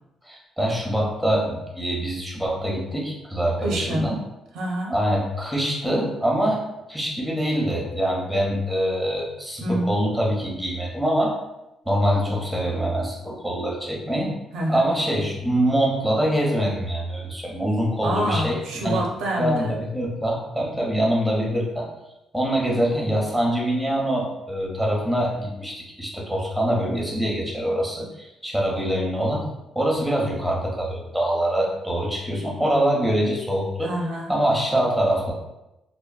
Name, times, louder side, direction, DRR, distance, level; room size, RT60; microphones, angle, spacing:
voice 1, 0.2-4.2 4.9-11.4 11.9-14.4 14.7-19.0 19.4-21.9 22.3-29.5 29.7-33.9 34.3-35.3, equal, ahead, -3 dB, 0.7 m, -24 dB
voice 2, 3.6-4.1 4.5-4.9 9.6-9.9 14.5-14.9 18.0-19.8 33.8-34.3, right 1 dB, 90° right, -1 dB, 0.5 m, -27 dB
2.9 x 2.1 x 2.3 m, 0.93 s
cardioid pair, 90°, 0 cm